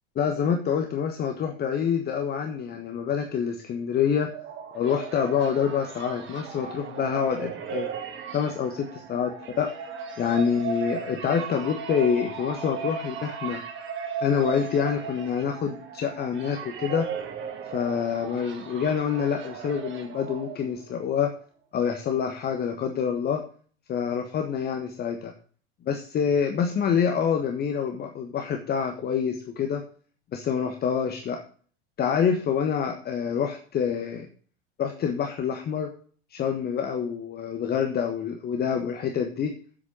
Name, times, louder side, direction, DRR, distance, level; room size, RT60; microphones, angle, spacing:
voice 1, 0.2-4.3 4.7-7.9 8.3-9.3 9.6-9.7 10.2-13.6 14.2-17.1 17.7-21.3 21.7-23.4 23.9-25.3 25.8-29.8 30.3-31.4 32.0-34.3 34.8-35.9 36.3-39.5, left 7 dB, 30° left, 5 dB, 1.3 m, -26 dB
sound 1, 4.0-21.0, right 6 dB, 35° right, 2.2 m, -37 dB
8.1 x 7.7 x 7.5 m, 0.43 s
figure-of-eight pair, 80°, 32 cm